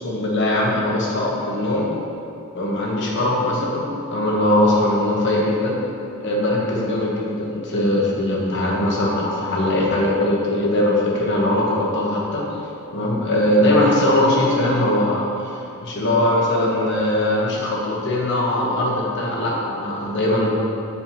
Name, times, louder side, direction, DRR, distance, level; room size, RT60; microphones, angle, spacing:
voice 1, 0.0-1.9 2.5-5.8 6.2-12.4 12.9-20.5, left 1 dB, 55° left, -4 dB, 1.1 m, -20 dB
9.0 x 4.3 x 2.9 m, 2.7 s
head